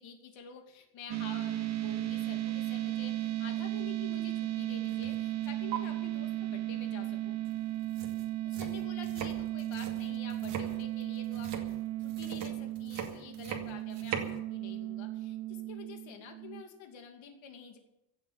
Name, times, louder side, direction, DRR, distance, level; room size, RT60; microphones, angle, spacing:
voice 1, 0.0-7.4 8.4-11.6 12.0-17.8, left 6 dB, 75° left, 4 dB, 2.6 m, -49 dB
sound 1, 1.1-16.6, right 15 dB, 35° right, 0.8 m, -35 dB
sound 2, 4.9-5.2 5.4-5.8 7.5-7.6 7.8-14.4, right 7 dB, 60° right, 2.4 m, -41 dB
16.0 x 7.4 x 9.7 m, 0.86 s
cardioid pair, 175°, 47 cm